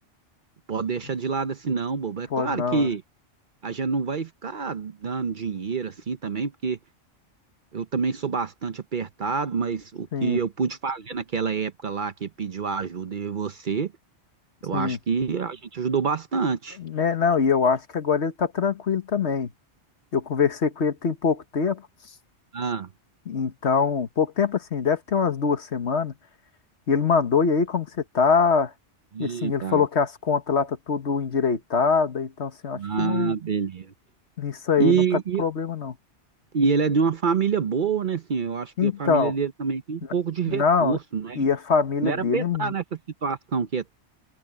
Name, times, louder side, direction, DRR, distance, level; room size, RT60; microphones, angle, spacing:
voice 1, 0.7-3.0 3.6-6.8 7.7-13.9 14.6-16.8 22.5-22.9 29.1-29.8 32.7-33.9 34.8-35.4 36.5-41.4 42.0-42.8 43.2-43.9, right 5 dB, 50° right, 0.8 m, -27 dB
voice 2, 2.3-2.9 10.1-10.4 14.7-15.0 16.8-19.5 20.1-21.8 23.3-26.1 26.9-27.9 28.1-28.7 29.2-33.4 34.4-35.0 35.4-35.9 38.8-39.3 40.5-41.0 41.3-42.7, left 5 dB, 65° left, 1.6 m, -23 dB
open air
omnidirectional pair, 1.2 m